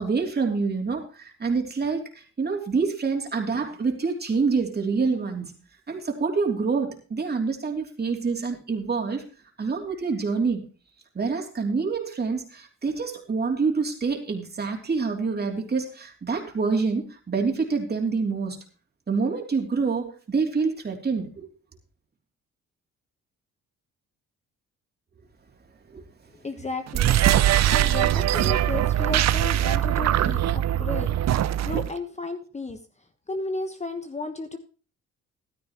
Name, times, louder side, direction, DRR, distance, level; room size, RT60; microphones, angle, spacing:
voice 1, 0.0-5.5 5.9-9.2 9.6-10.6 11.1-18.6 19.1-21.5 25.9-26.0 28.6-28.7, right 4 dB, 35° right, 2 dB, 3.1 m, -26 dB
voice 2, 26.4-27.2 27.7-32.8 33.3-34.6, left 3 dB, 20° left, 7 dB, 1.3 m, -34 dB
sound 1, 26.9-31.9, right 12 dB, 60° right, 0.6 m, -22 dB
14.0 x 12.5 x 3.1 m, 0.35 s
cardioid pair, 90°, 30 cm